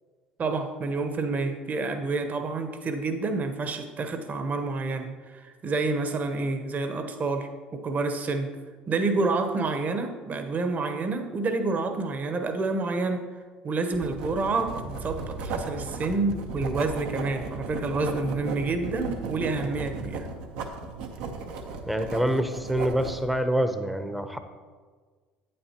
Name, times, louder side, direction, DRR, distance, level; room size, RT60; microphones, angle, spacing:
voice 1, 0.4-8.6 8.9-13.3 13.6-20.3, right 3 dB, 40° right, 6 dB, 1.0 m, -28 dB
Writing, 13.9-23.3, right 4 dB, 75° right, 0.9 m, -36 dB
voice 2, 21.9-24.4, equal, ahead, 8 dB, 0.8 m, -26 dB
8.7 x 8.6 x 2.9 m, 1.5 s
hypercardioid pair, 75°, 4 cm